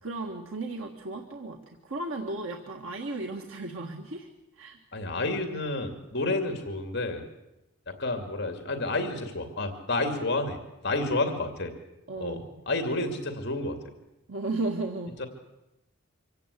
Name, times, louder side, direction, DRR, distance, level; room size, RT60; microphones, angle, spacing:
voice 1, 0.0-4.3 4.6-4.8 12.1-12.5 14.3-15.2, right 2 dB, 80° right, 2 dB, 1.7 m, -35 dB
voice 2, 4.9-7.2 7.9-10.6 10.8-11.7 12.2-13.8 15.2-15.3, left 2 dB, 55° left, 6 dB, 2.5 m, -30 dB
25.0 x 16.5 x 8.4 m, 0.95 s
head